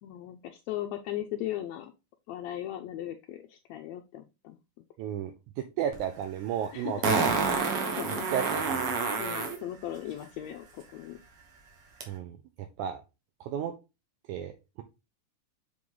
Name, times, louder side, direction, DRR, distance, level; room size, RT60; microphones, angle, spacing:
voice 1, 0.0-1.9 2.3-4.6 6.7-7.1 8.0-8.3 9.2-11.2, left 12 dB, 90° left, 5 dB, 1.5 m, -37 dB
voice 2, 5.0-7.3 8.3-8.9 12.1-13.0 13.4-13.7 14.3-14.8, right 9 dB, 75° right, 6 dB, 1.9 m, -34 dB
Fart, 5.9-6.0 7.0-9.6 12.0-12.1, right 4 dB, 55° right, 1.9 m, -28 dB
7.6 x 3.9 x 3.8 m, 0.26 s
omnidirectional pair, 3.8 m